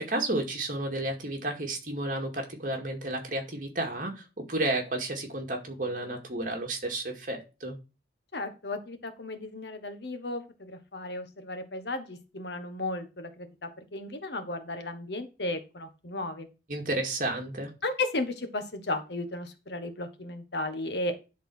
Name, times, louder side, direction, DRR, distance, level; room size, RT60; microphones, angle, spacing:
voice 1, 0.0-7.8 16.7-17.7, right 2 dB, 45° right, 2 dB, 2.2 m, -32 dB
voice 2, 8.3-13.3 13.6-16.5 17.8-21.2, left 2 dB, 70° left, 8 dB, 1.4 m, -34 dB
10.5 x 4.0 x 6.3 m, 0.30 s
head